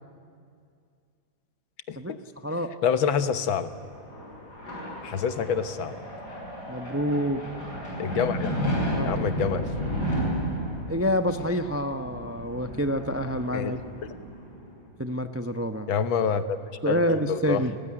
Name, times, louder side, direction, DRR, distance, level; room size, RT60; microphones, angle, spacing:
voice 1, 1.9-2.2 2.8-3.7 5.0-6.0 8.0-8.6 9.0-9.6 13.5-13.7 15.9-16.6 16.9-17.6, left 7 dB, 80° left, 11 dB, 1.9 m, -27 dB
voice 2, 2.4-2.8 6.7-7.4 8.6-9.1 10.9-13.8 15.0-15.9 16.8-17.8, equal, 15° right, 8 dB, 0.4 m, -27 dB
sound 1, 3.5-14.8, equal, 55° left, 7.6 m, -33 dB
30.0 x 19.0 x 9.9 m, 2.2 s
omnidirectional pair, 2.1 m